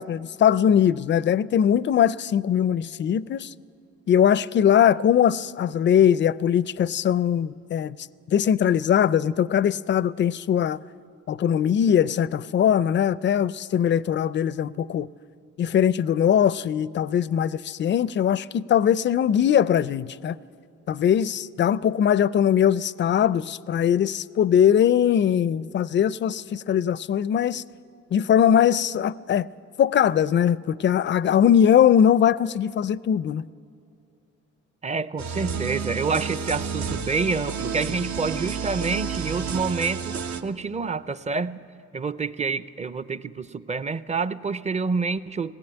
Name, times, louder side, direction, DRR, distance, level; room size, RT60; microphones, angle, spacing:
voice 1, 0.0-3.5 4.1-8.0 8.3-10.8 11.3-15.1 15.6-20.4 20.9-27.6 28.1-29.5 29.8-33.4, left 9 dB, 40° left, 0.4 m, -21 dB
voice 2, 34.8-41.6 41.9-45.5, right 4 dB, 25° right, 0.6 m, -28 dB
sound 1, 35.2-40.4, right 6 dB, 70° right, 1.2 m, -30 dB
20.0 x 17.5 x 9.0 m
cardioid pair, 90°, 30 cm